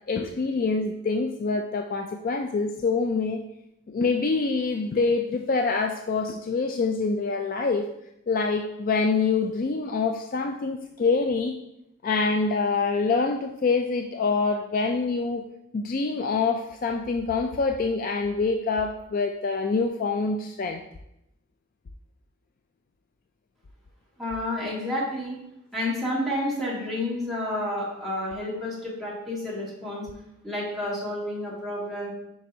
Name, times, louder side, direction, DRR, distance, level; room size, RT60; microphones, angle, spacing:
voice 1, 0.1-3.4 3.9-7.9 8.3-11.5 12.0-15.4 15.7-20.8, left 4 dB, 40° left, 4 dB, 0.3 m, -25 dB
voice 2, 24.2-25.4 25.7-30.1 30.4-32.1, left 1 dB, ahead, -7 dB, 2.0 m, -30 dB
8.6 x 5.2 x 2.7 m, 0.85 s
head